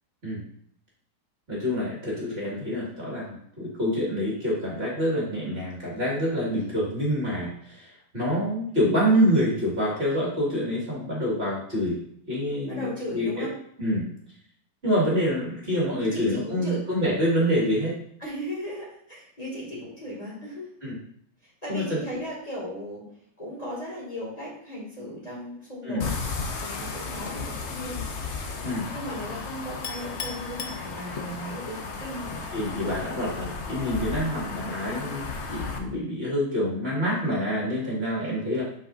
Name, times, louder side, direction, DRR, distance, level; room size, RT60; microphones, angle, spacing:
voice 1, 1.5-12.0 12.3-13.5 13.8-14.1 14.8-18.0 20.8-20.9 21.7-22.0 25.8-26.0 28.6-28.9 32.5-38.6, equal, 40° right, -5 dB, 2.4 m, -26 dB
voice 2, 12.7-13.5 16.1-16.8 18.2-20.7 21.6-23.1 23.4-26.1 26.6-28.0 28.9-32.4 34.8-35.0, equal, 25° left, -7 dB, 2.4 m, -36 dB
sound 1, 26.0-35.8, left 4 dB, 50° left, 1.0 m, -34 dB
Chink clink, 29.8-31.5, left 6 dB, 70° left, 1.3 m, -38 dB
8.0 x 5.8 x 2.6 m, 0.66 s
omnidirectional pair, 1.7 m